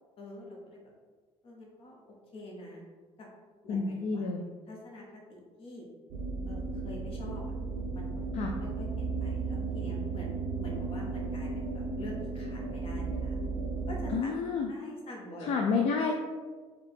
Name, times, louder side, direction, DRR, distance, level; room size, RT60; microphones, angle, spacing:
voice 1, 0.2-0.8 1.4-2.0 2.3-2.8 3.2-3.3 3.6-4.3 4.7-5.8 6.5-7.4 7.9-8.1 8.6-13.3 13.9-14.3 14.7-15.9, left 1 dB, 50° left, -1 dB, 1.1 m, -46 dB
voice 2, 3.7-4.4 8.3-8.5 14.1-14.7 15.4-16.1, left 5 dB, 70° left, 2 dB, 0.4 m, -29 dB
sound 1, 6.1-14.2, right 4 dB, 75° right, 0.5 m, -35 dB
4.5 x 2.5 x 3.5 m, 1.4 s
cardioid pair, 125°, 12 cm